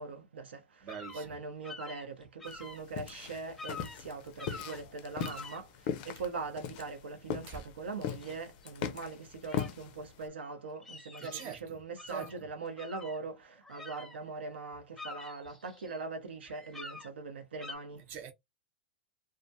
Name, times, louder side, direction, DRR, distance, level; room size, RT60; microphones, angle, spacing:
voice 1, 0.0-0.9 1.1-18.0, right 4 dB, 85° right, 0.9 m, -42 dB
voice 2, 0.8-1.4 7.5-7.6 11.2-11.8 12.1-12.5 17.9-18.3, right 7 dB, 35° right, 0.8 m, -44 dB
sound 1, 0.9-1.3 1.6-2.8 3.2-3.3 3.6-4.0 4.4-4.9 5.2-5.6 8.2-8.3 8.6-8.7 9.5-9.7 10.4-11.6 12.0-12.4 12.8-14.5 14.7-16.0 16.4-17.1 17.6-17.7, left 3 dB, 5° left, 0.7 m, -47 dB
sound 2, 2.5-10.3, left 8 dB, 50° left, 0.4 m, -40 dB
2.4 x 2.1 x 2.7 m
hypercardioid pair, 120°, 6 cm